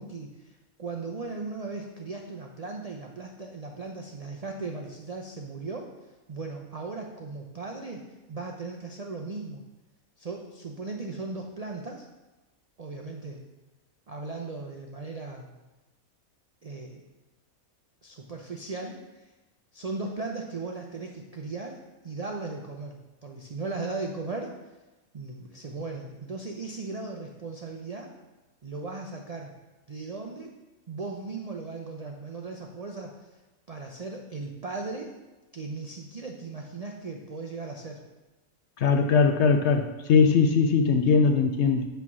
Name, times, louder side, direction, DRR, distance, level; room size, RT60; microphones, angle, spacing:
voice 1, 0.0-5.9 6.3-8.0 8.3-9.6 10.2-12.1 12.8-13.4 14.1-15.5 16.6-17.0 18.0-19.3 19.7-24.5 25.1-28.1 28.6-29.5 29.9-30.5 30.9-33.3 33.7-35.2 35.5-38.0, right 3 dB, 60° right, 1 dB, 0.4 m, -37 dB
voice 2, 38.8-41.9, left 5 dB, 65° left, 5 dB, 0.7 m, -21 dB
8.4 x 3.4 x 5.9 m, 1.1 s
omnidirectional pair, 1.5 m